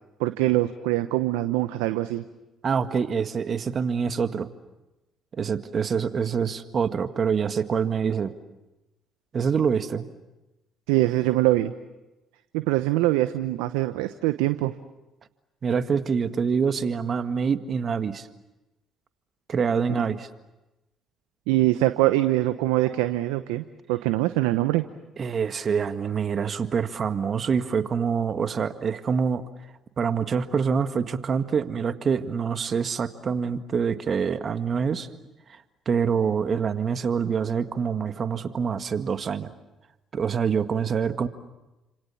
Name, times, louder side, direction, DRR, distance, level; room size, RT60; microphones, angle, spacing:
voice 1, 0.2-2.2 10.9-11.7 12.5-14.7 19.9-20.0 21.5-24.8, right 17 dB, 80° right, 11 dB, 0.9 m, -23 dB
voice 2, 2.6-4.5 5.3-8.3 9.3-10.1 15.6-18.3 19.5-20.3 25.2-29.4 30.0-35.1 35.5-39.5 40.1-41.3, right 6 dB, 45° right, 9 dB, 1.8 m, -26 dB
30.0 x 27.0 x 7.2 m, 1.0 s
hypercardioid pair, 55°, 0 cm